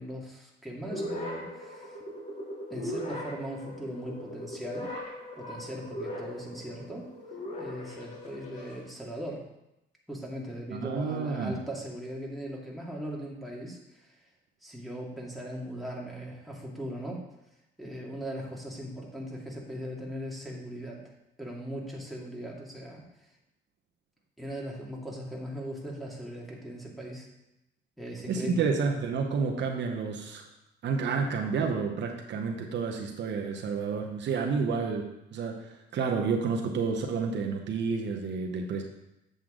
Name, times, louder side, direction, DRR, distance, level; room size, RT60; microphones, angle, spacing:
voice 1, 0.0-2.0 2.7-4.9 5.4-7.1 7.6-9.5 10.1-14.2 14.6-17.3 17.8-21.0 21.4-23.0 24.4-27.3 28.0-28.7, equal, ahead, -4 dB, 2.2 m, -39 dB
sound 1, 0.8-8.8, left 1 dB, 40° left, 3.2 m, -39 dB
voice 2, 10.7-11.5 28.3-30.4 30.8-38.8, right 5 dB, 65° right, 2 dB, 1.0 m, -30 dB
7.7 x 6.8 x 3.8 m, 0.90 s
cardioid pair, 90°, 20 cm